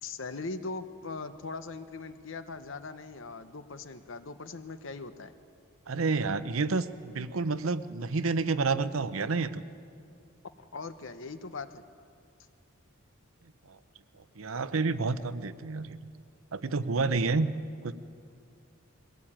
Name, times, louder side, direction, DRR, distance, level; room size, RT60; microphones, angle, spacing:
voice 1, 0.0-5.3 10.6-11.8, left 3 dB, 65° left, 11 dB, 0.9 m, -40 dB
voice 2, 5.9-9.6 13.7-13.8 14.4-16.1 16.5-17.5 17.8-17.9, right 3 dB, 80° right, 13 dB, 0.8 m, -29 dB
21.0 x 16.5 x 8.9 m, 2.4 s
head